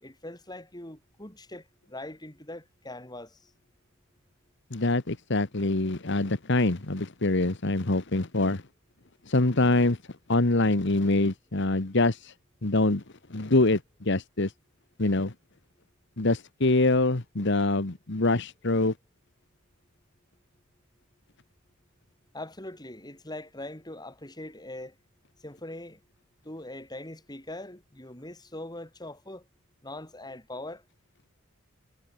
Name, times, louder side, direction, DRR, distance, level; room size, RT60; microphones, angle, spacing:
voice 1, 0.0-3.4 22.3-24.9 25.4-26.0 26.4-29.4 29.8-30.8, left 1 dB, 20° left, 4.5 m, -41 dB
voice 2, 4.7-8.6 9.3-10.0 10.3-12.3 12.6-13.0 13.3-14.5 15.0-15.3 16.2-18.9, left 2 dB, 55° left, 1.4 m, -25 dB
head